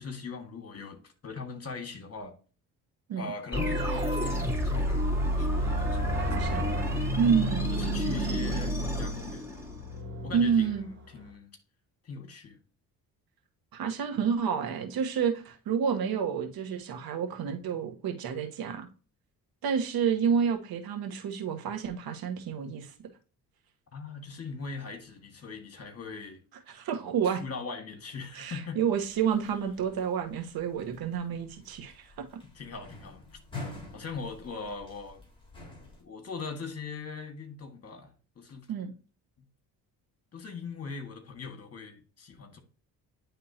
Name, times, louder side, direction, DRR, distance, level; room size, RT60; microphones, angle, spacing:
voice 1, 0.0-2.3 3.2-6.6 7.4-9.7 10.2-11.5 12.0-12.6 23.9-26.4 27.2-28.8 32.5-33.2 33.6-35.2 36.0-38.1 38.4-38.7 40.3-42.6, left 4 dB, 40° left, 1.9 m, -41 dB
sound 1, 3.5-10.0, equal, 5° right, 3.5 m, -29 dB
sound 2, 3.5-11.3, right 5 dB, 30° right, 1.5 m, -39 dB
voice 2, 6.3-6.7 7.2-7.7 10.3-10.9 13.7-18.9 19.6-22.9 26.7-27.4 28.3-32.0 32.3-32.4 38.7-38.9, right 7 dB, 70° right, 1.3 m, -29 dB
sound 3, 28.9-36.0, left 3 dB, 15° left, 3.4 m, -47 dB
10.0 x 3.6 x 2.9 m
supercardioid pair, 70°, 38 cm